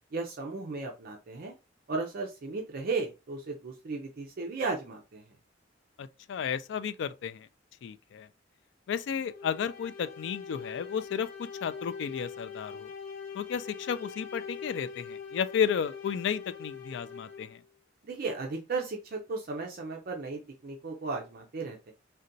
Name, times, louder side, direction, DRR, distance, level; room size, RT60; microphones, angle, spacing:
voice 1, 0.1-1.6 1.9-5.2 18.1-21.9, right 3 dB, 50° right, 0.5 m, -35 dB
voice 2, 6.0-7.5 7.8-8.3 8.9-12.9 13.3-17.6, left 7 dB, 65° left, 0.3 m, -33 dB
sound 1, 9.3-17.7, left 5 dB, 85° left, 1.1 m, -43 dB
3.8 x 2.2 x 2.6 m
head